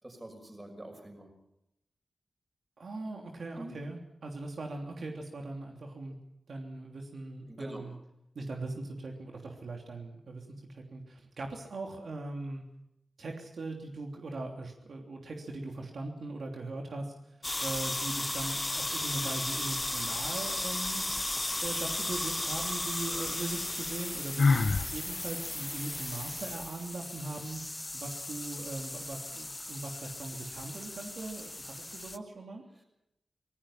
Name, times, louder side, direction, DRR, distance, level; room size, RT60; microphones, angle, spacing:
voice 1, 0.0-1.3 3.6-3.7 7.5-7.8 32.8-32.9, right 1 dB, 20° right, 4 dB, 6.1 m, -45 dB
voice 2, 2.8-6.1 6.5-7.9 8.3-12.6 13.2-17.1 17.6-21.0 21.6-24.7 24.9-32.6, right 2 dB, 70° right, 1 dB, 3.1 m, -40 dB
sound 1, 17.4-32.2, left 2 dB, 20° left, 0.7 m, -35 dB
Sigh, 24.4-24.9, left 4 dB, 55° left, 1.7 m, -23 dB
26.0 x 19.5 x 5.8 m, 0.83 s
wide cardioid pair, 120°, 0 cm